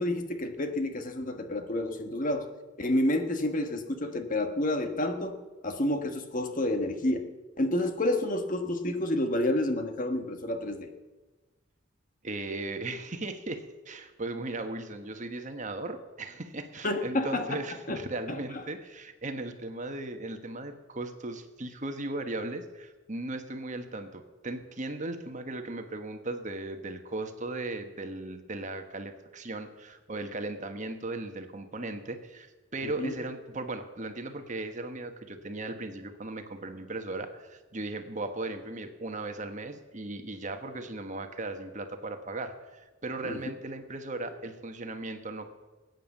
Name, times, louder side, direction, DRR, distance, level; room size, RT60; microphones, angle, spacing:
voice 1, 0.0-2.5 2.8-5.4 5.6-7.3 7.6-10.9 16.8-17.6 17.9-18.0 18.3-18.6 32.8-33.1 43.2-43.4, left 1 dB, 45° left, 6 dB, 1.4 m, -29 dB
voice 2, 12.2-45.5, right 2 dB, 40° right, 7 dB, 1.3 m, -37 dB
20.5 x 9.3 x 7.2 m, 1.2 s
head